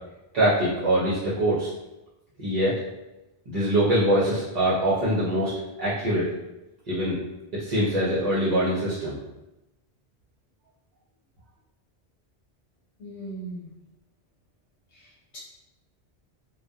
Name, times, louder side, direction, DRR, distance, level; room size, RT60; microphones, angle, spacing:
voice 1, 0.3-1.7 2.4-2.8 3.5-5.5 5.8-6.3 6.9-7.2 7.5-9.2, right 1 dB, 50° right, -8 dB, 0.6 m, -23 dB
voice 2, 13.0-13.7 14.9-15.4, right 2 dB, 80° left, -7 dB, 1.0 m, -39 dB
2.3 x 2.1 x 2.6 m, 0.97 s
omnidirectional pair, 1.1 m